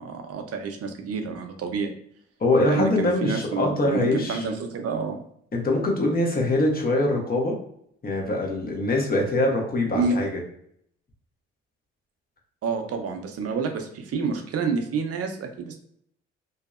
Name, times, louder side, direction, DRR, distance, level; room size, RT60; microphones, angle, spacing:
voice 1, 0.0-1.9 2.7-5.2 9.9-10.2 12.6-15.8, right 4 dB, 50° right, 5 dB, 0.6 m, -29 dB
voice 2, 2.4-4.4 5.5-7.6 8.0-10.4, left 2 dB, 30° left, 0 dB, 1.0 m, -23 dB
2.7 x 2.0 x 2.4 m, 0.69 s
supercardioid pair, 60°, 31 cm